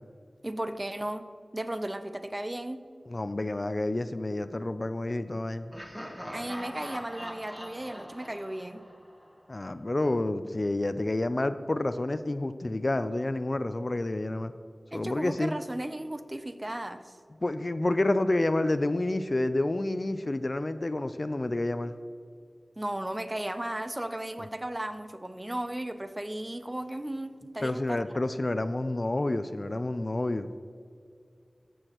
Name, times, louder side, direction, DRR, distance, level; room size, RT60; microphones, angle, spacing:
voice 1, 0.4-2.8 6.3-8.8 14.9-17.1 22.8-28.0, right 1 dB, 25° right, 10 dB, 0.6 m, -35 dB
voice 2, 3.1-5.7 9.5-14.5 14.9-15.5 17.4-22.0 27.6-30.5, left 2 dB, 45° left, 12 dB, 0.4 m, -29 dB
Laughter, 5.7-9.6, equal, 5° right, 1.3 m, -42 dB
14.0 x 6.3 x 3.0 m, 2.3 s
wide cardioid pair, 45°, 0 cm